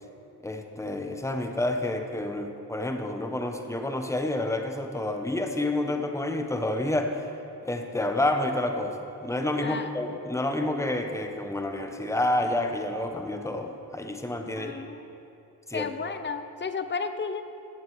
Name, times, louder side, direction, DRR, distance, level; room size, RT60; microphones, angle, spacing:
voice 1, 0.4-7.3 7.6-14.8 15.7-15.9, left 1 dB, 5° left, 5 dB, 1.0 m, -29 dB
voice 2, 14.6-15.0 15.7-17.4, left 5 dB, 30° left, 10 dB, 0.7 m, -33 dB
15.0 x 7.8 x 4.7 m, 2.8 s
cardioid pair, 45°, 40 cm